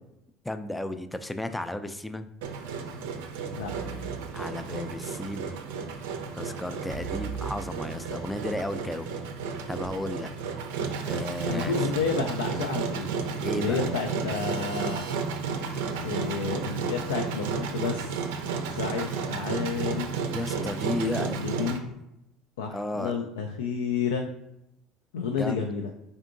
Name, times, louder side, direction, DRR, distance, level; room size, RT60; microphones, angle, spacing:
voice 1, 0.4-2.3 4.3-5.6 6.4-9.1 9.7-10.3 11.1-11.8 13.4-13.9 20.3-21.4 22.7-23.2 25.4-25.6, left 1 dB, 10° left, 10 dB, 0.3 m, -33 dB
Engine, 2.4-21.8, right 5 dB, 80° right, 0.4 m, -32 dB
sound 1, 3.6-5.2 6.9-8.7, right 5 dB, 60° left, 0.8 m, -41 dB
voice 2, 11.5-13.1 13.5-15.0 16.0-18.2 18.7-20.1 20.9-22.0 22.6-24.3 25.1-25.9, left 6 dB, 85° left, 3 dB, 0.3 m, -30 dB
3.7 x 3.5 x 2.5 m, 0.85 s
hypercardioid pair, 75°, 0 cm